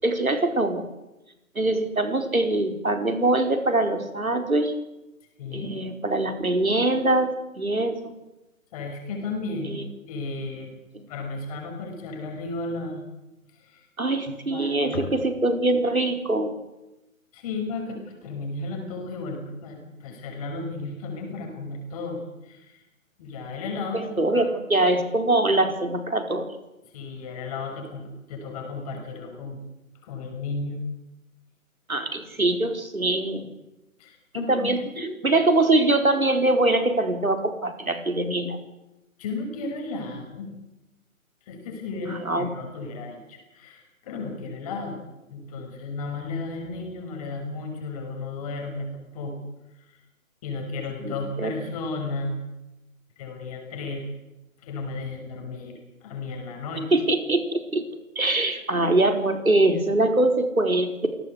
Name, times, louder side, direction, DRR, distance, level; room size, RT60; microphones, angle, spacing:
voice 1, 0.0-0.8 1.5-4.7 5.5-8.1 9.7-9.9 10.9-11.1 14.0-16.5 23.9-26.5 31.9-33.5 34.3-38.6 42.1-42.5 51.0-51.5 56.9-57.8 58.1-61.1, right 2 dB, 75° right, 6 dB, 4.7 m, -23 dB
voice 2, 5.4-5.7 8.7-9.8 10.1-10.7 11.1-13.0 13.5-13.8 14.3-15.1 17.3-22.8 23.2-24.4 26.9-29.6 30.0-30.8 34.0-34.7 35.0-35.1 39.2-40.5 41.5-45.0 45.3-49.3 50.4-52.4 53.2-54.0 54.6-56.9, left 3 dB, 25° left, 3 dB, 6.1 m, -34 dB
28.0 x 18.0 x 8.3 m, 0.98 s
figure-of-eight pair, 140°, 42 cm